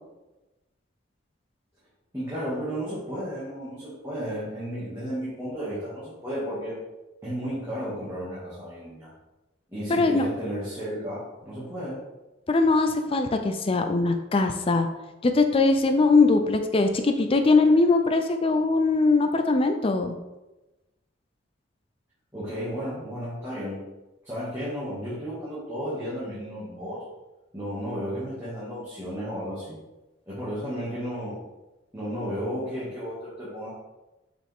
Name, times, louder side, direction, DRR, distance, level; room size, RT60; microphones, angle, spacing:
voice 1, 2.1-6.8 7.2-9.1 9.7-12.0 22.3-23.9 24.2-27.0 27.5-29.8 30.3-31.4 31.9-33.7, equal, 15° right, -11 dB, 2.1 m, -33 dB
voice 2, 9.9-10.3 12.5-14.9 15.2-20.1, left 3 dB, 30° left, 7 dB, 0.4 m, -21 dB
7.1 x 4.9 x 3.6 m, 1.1 s
head